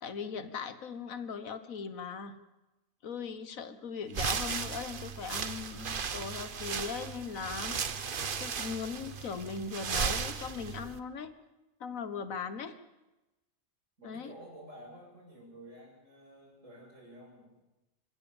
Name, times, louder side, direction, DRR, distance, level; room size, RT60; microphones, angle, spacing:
voice 1, 0.0-2.4 3.0-7.8 8.4-11.3 11.8-12.8 14.0-14.3, left 6 dB, 75° left, 12 dB, 1.6 m, -39 dB
sound 1, 4.1-11.0, right 6 dB, 45° right, 1.0 m, -36 dB
voice 2, 14.0-17.6, right 1 dB, 65° right, -2 dB, 8.0 m, -51 dB
27.0 x 16.5 x 7.1 m, 1.0 s
omnidirectional pair, 1.4 m